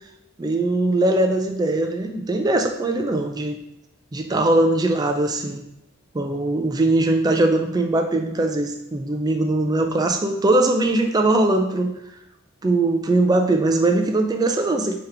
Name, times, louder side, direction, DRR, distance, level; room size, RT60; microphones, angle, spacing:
voice 1, 0.4-3.6 4.1-5.6 6.1-11.9 12.6-14.9, right 2 dB, 20° right, 5 dB, 0.3 m, -21 dB
3.6 x 2.8 x 3.3 m, 0.85 s
head